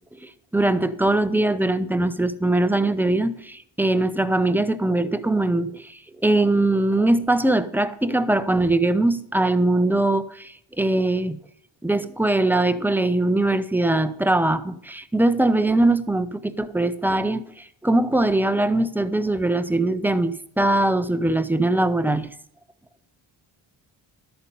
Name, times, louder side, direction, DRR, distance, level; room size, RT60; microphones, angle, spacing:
voice 1, 0.2-11.4 11.8-22.3, right 2 dB, 5° right, 0.4 m, -21 dB
12.5 x 8.3 x 5.4 m
wide cardioid pair, 160°, 48 cm